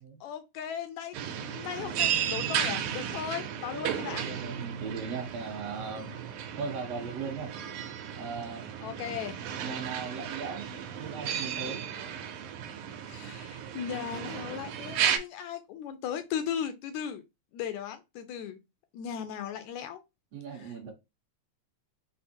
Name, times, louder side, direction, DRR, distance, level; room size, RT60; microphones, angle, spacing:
voice 1, 0.2-4.3 8.8-9.4 13.1-17.2 17.5-18.6 18.9-20.0 20.5-20.7, left 9 dB, 80° left, 1.8 m, -37 dB
sound 1, 1.1-15.2, right 9 dB, 80° right, 2.1 m, -34 dB
voice 2, 3.7-6.2 6.6-7.6 8.2-8.7 9.6-10.7 11.0-11.9 20.3-20.9, right 5 dB, 65° right, 1.9 m, -38 dB
5.3 x 2.1 x 4.2 m
omnidirectional pair, 3.5 m